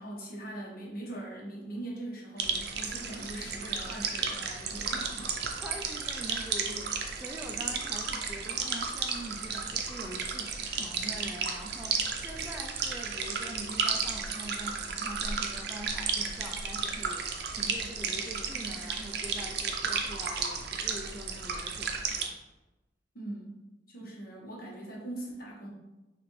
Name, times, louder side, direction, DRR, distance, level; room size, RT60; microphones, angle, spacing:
voice 1, 0.0-5.4 23.1-23.6 23.9-25.7, right 1 dB, 55° left, -3 dB, 1.2 m, -41 dB
sound 1, 2.4-22.3, right 5 dB, 60° right, 0.5 m, -33 dB
voice 2, 5.6-22.4 24.0-24.1, right 1 dB, 10° right, 1 dB, 0.3 m, -44 dB
5.9 x 2.5 x 3.2 m, 1.1 s
head